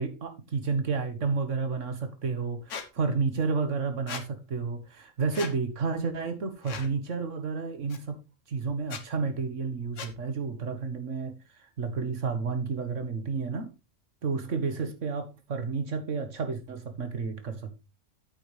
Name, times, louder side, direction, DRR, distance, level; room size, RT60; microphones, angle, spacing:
voice 1, 0.0-8.2 8.5-11.4 11.8-13.7 14.2-17.8, right 4 dB, 70° right, 1.7 m, -31 dB
Squeak, 2.7-2.9 4.1-4.2 5.3-5.5 6.6-6.9 7.9-8.0 8.8-9.0 10.0-10.1, left 6 dB, 70° left, 1.4 m, -38 dB
8.6 x 8.5 x 3.3 m
omnidirectional pair, 1.3 m